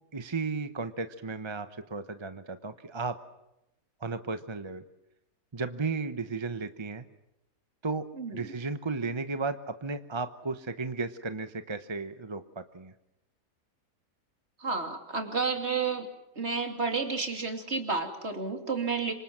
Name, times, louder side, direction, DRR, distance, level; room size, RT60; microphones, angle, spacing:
voice 1, 0.1-3.2 4.0-4.8 5.5-7.0 7.8-12.9, right 4 dB, 25° right, 10 dB, 0.7 m, -34 dB
voice 2, 8.1-8.5 14.6-16.1 16.3-19.1, right 4 dB, 45° right, 5 dB, 3.0 m, -31 dB
26.5 x 25.0 x 7.4 m, 0.88 s
omnidirectional pair, 1.7 m